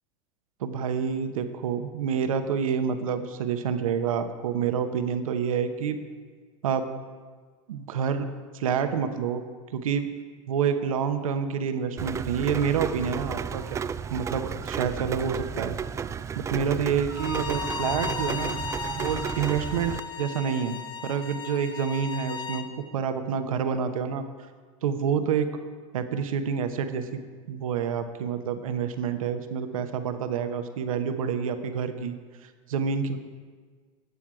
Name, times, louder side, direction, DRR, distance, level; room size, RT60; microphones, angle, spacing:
voice 1, 0.6-6.0 6.6-6.9 7.7-8.3 8.5-9.4 9.7-10.1 10.5-13.8 14.1-15.8 16.4-18.6 19.0-19.9 20.2-20.8 21.0-22.7 22.9-24.2 24.8-25.5 25.9-27.2 27.5-32.1 32.4-33.2, right 7 dB, 90° right, 8 dB, 1.0 m, -28 dB
Rain, 12.0-20.0, right 7 dB, 15° right, 0.3 m, -33 dB
Bowed string instrument, 17.1-22.7, left 6 dB, 30° left, 1.3 m, -36 dB
19.5 x 7.4 x 4.9 m, 1.5 s
supercardioid pair, 115°, 17 cm